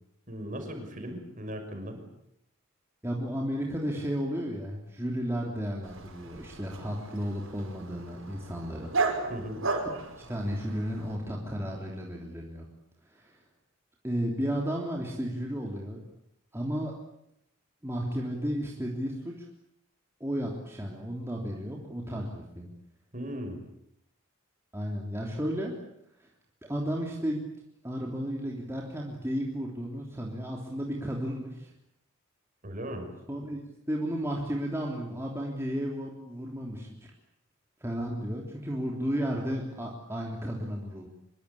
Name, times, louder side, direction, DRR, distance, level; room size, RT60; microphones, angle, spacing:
voice 1, 0.3-2.0 9.3-9.6 23.1-23.6 32.6-33.1, equal, 40° right, 5 dB, 6.2 m, -37 dB
voice 2, 3.0-8.9 10.3-12.7 13.1-13.3 14.0-16.0 16.5-16.9 17.8-19.4 20.2-22.7 24.7-25.8 26.2-26.3 26.6-27.4 27.8-31.7 33.3-33.6 33.9-37.1 37.8-41.1, equal, 10° right, -1 dB, 3.3 m, -33 dB
Dog, 5.8-11.2, right 3 dB, 75° right, 5.9 m, -35 dB
25.0 x 23.5 x 8.5 m, 0.78 s
head